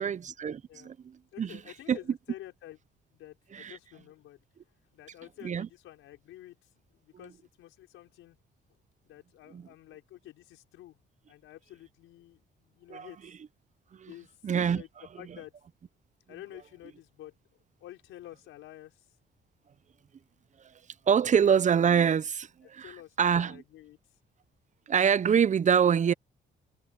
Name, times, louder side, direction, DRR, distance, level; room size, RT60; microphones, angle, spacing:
voice 1, 0.0-1.6 1.9-2.0 3.5-3.8 5.4-5.7 9.5-9.6 12.9-13.1 14.0-14.1 14.4-14.8 21.1-22.9 23.2-23.6 24.9-26.1, right 7 dB, 40° right, 0.6 m, -25 dB
voice 2, 1.3-2.8 3.1-4.4 4.9-8.4 9.0-11.0 11.3-13.3 14.1-14.3 14.7-14.9 15.2-15.5 16.3-19.0 22.8-24.0, left 14 dB, 90° left, 5.1 m, -50 dB
cardioid pair, 90°, 20 cm